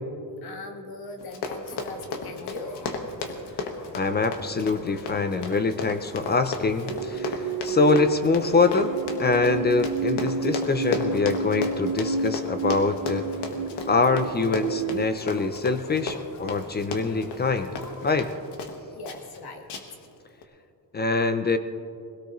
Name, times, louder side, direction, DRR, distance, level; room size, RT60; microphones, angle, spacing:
voice 1, 0.4-2.8 19.0-19.7, left 3 dB, 65° left, 4 dB, 1.6 m, -39 dB
Run, 1.2-18.8 19.0-19.4 19.7-20.1 20.4-20.5, left 4 dB, 85° left, 1.5 m, -34 dB
sound 1, 1.7-18.1, left 3 dB, 50° left, 1.2 m, -48 dB
voice 2, 3.9-8.9 9.2-13.3 13.9-17.8 18.0-18.3 20.9-21.6, left 4 dB, 25° left, 10 dB, 0.4 m, -24 dB
sound 2, 6.9-15.1, right 5 dB, 55° right, 0.6 m, -30 dB
22.0 x 17.0 x 3.1 m, 2.7 s
wide cardioid pair, 180°, 40 cm